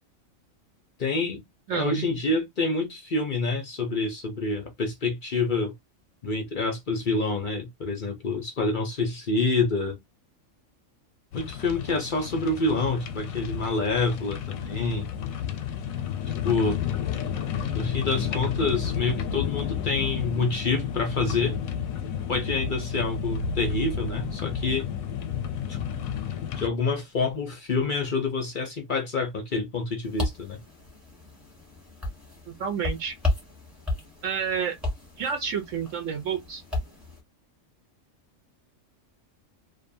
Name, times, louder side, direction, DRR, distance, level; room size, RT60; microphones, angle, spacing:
voice 1, 1.0-1.4 1.7-5.7 6.2-10.0 11.3-15.1 16.4-16.8 17.7-21.6 22.3-24.9 25.7-25.8 26.6-30.6, left 3 dB, 55° left, 0.6 m, -27 dB
voice 2, 1.7-2.0 32.5-33.1 34.2-34.7 35.2-36.6, right 7 dB, 70° right, 1.0 m, -29 dB
sound 1, 11.3-26.7, left 7 dB, 90° left, 1.0 m, -31 dB
sound 2, 30.0-37.2, left 2 dB, ahead, 1.0 m, -34 dB
2.6 x 2.3 x 2.5 m
omnidirectional pair, 1.4 m